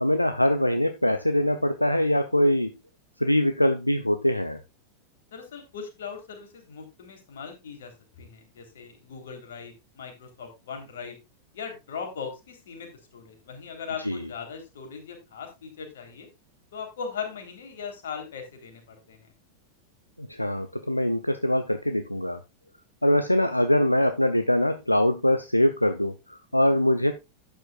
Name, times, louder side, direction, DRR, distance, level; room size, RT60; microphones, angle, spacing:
voice 1, 0.0-2.7 3.2-4.6 14.0-14.2 20.2-22.4 23.0-27.1, left 1 dB, 85° left, 9 dB, 0.6 m, -23 dB
voice 2, 5.3-7.9 8.2-11.2 11.5-16.3 16.7-19.3, left 6 dB, 60° left, 3 dB, 3.6 m, -39 dB
12.0 x 9.3 x 2.4 m, 0.24 s
figure-of-eight pair, 90°, 0 cm